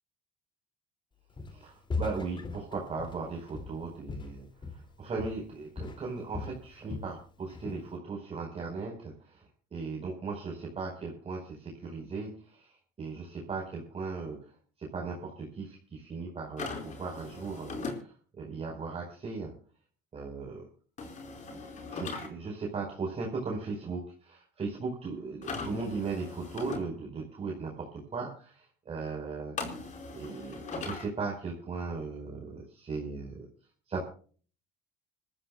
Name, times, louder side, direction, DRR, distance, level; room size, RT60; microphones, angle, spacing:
Walk footsteps, 1.4-1.6 1.9-4.9 5.2-5.5 5.8-7.2 7.5-7.9, left 3 dB, 30° left, 2.8 m, -38 dB
voice 1, 1.5-4.5 4.7-9.4 9.7-14.5 14.8-19.5 20.1-20.6 21.4-21.6 21.9-29.5 30.1-33.5 33.9-34.0, right 4 dB, 35° right, -1 dB, 5.0 m, -37 dB
sound 1, 16.6-18.0 21.0-22.3 25.4-26.8 29.6-31.1, left 4 dB, 45° left, 4.7 m, -39 dB
26.5 x 14.0 x 2.4 m, 0.42 s
cardioid pair, 110°, 17 cm